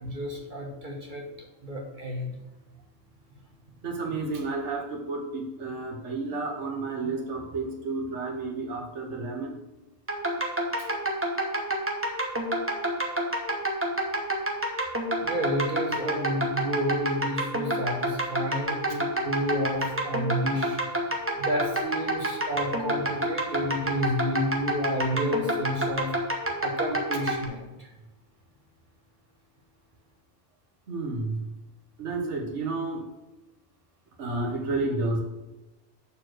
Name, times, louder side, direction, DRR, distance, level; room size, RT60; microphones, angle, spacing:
voice 1, 0.0-2.3 15.2-26.2 26.6-27.9, equal, 45° right, 0 dB, 1.3 m, -31 dB
voice 2, 3.8-9.5 10.8-10.9 30.9-31.5 32.0-33.1 34.2-35.2, right 3 dB, 80° right, 1 dB, 1.5 m, -31 dB
sound 1, 10.1-27.5, right 1 dB, 10° right, 1.0 m, -28 dB
7.0 x 4.6 x 6.2 m, 1.0 s
omnidirectional pair, 1.2 m